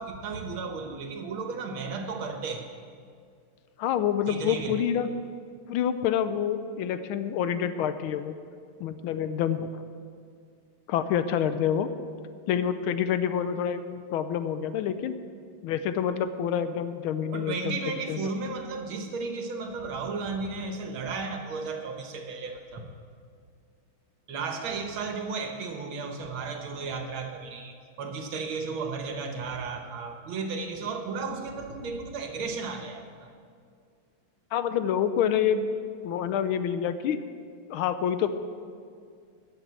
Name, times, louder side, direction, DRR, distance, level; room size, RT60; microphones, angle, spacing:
voice 1, 0.0-2.7 4.3-4.8 17.3-22.8 24.3-33.3, right 4 dB, 75° right, 5 dB, 1.9 m, -34 dB
voice 2, 3.8-5.1 5.7-8.3 8.8-9.8 10.9-11.9 12.5-15.2 15.6-17.8 18.1-18.3 34.5-35.7 36.0-37.2 37.7-38.3, left 8 dB, 80° left, 11 dB, 1.5 m, -27 dB
13.5 x 6.6 x 8.2 m, 2.2 s
omnidirectional pair, 2.3 m